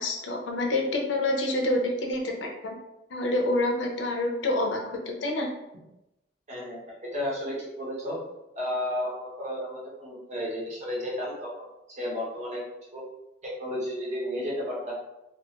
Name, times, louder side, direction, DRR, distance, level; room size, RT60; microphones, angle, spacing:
voice 1, 0.0-2.7 3.1-5.5, left 1 dB, 70° left, 1 dB, 0.5 m, -27 dB
voice 2, 6.5-8.2 8.5-12.6 12.9-13.0 13.4-14.9, left 1 dB, 35° right, -4 dB, 0.7 m, -33 dB
2.3 x 2.3 x 2.8 m, 0.91 s
head